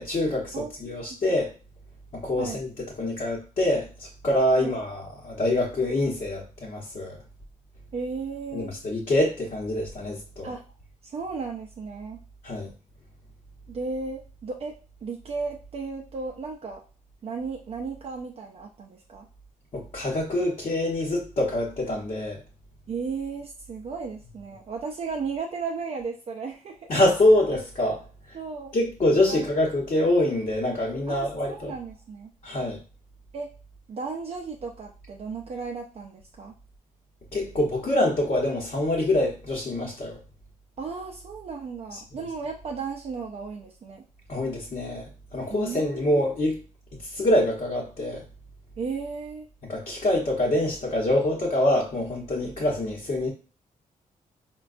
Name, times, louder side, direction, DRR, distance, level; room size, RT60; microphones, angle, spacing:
voice 1, 0.0-0.5 0.8-1.5 2.1-2.7 3.0-7.2 8.5-10.5 12.4-12.7 19.7-22.4 26.9-28.0 28.7-31.7 32.4-32.8 37.3-40.2 41.9-42.2 44.3-46.6 47.0-48.2 49.7-53.3, left 1 dB, 50° left, -3 dB, 0.9 m, -25 dB
voice 2, 0.5-1.2 2.4-2.6 4.6-4.8 7.9-8.7 10.4-10.6 11.0-12.2 13.7-14.7 15.0-16.8 17.2-19.3 22.9-26.9 28.3-28.7 29.3-29.5 31.1-32.3 33.3-33.5 33.9-36.5 40.8-44.0 45.5-46.2 48.8-49.5, right 4 dB, 45° right, 0 dB, 0.4 m, -35 dB
4.3 x 2.2 x 2.4 m, 0.34 s
wide cardioid pair, 130°, 14 cm